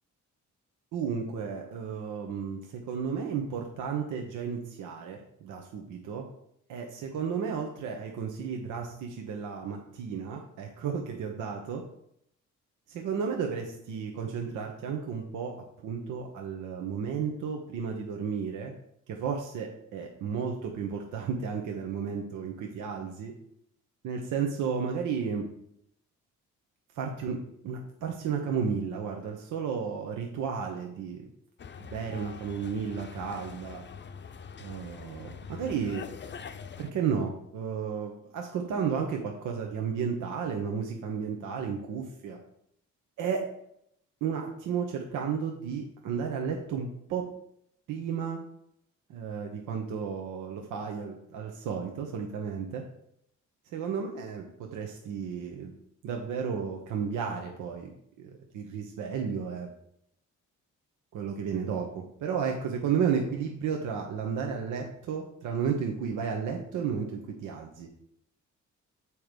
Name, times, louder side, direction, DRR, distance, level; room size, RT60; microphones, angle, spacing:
voice 1, 0.9-6.3 6.7-11.8 12.9-18.7 19.1-23.3 24.0-25.5 27.0-31.3 31.8-33.8 34.6-36.1 36.8-42.4 43.2-43.4 44.2-47.3 47.9-48.4 49.1-52.8 53.7-55.7 56.0-57.9 58.2-59.7 61.1-67.9, right 6 dB, 85° right, 2 dB, 1.1 m, -33 dB
sound 1, 31.6-36.9, left 6 dB, 35° left, 0.7 m, -44 dB
7.1 x 4.7 x 5.1 m, 0.73 s
cardioid pair, 90°, 30 cm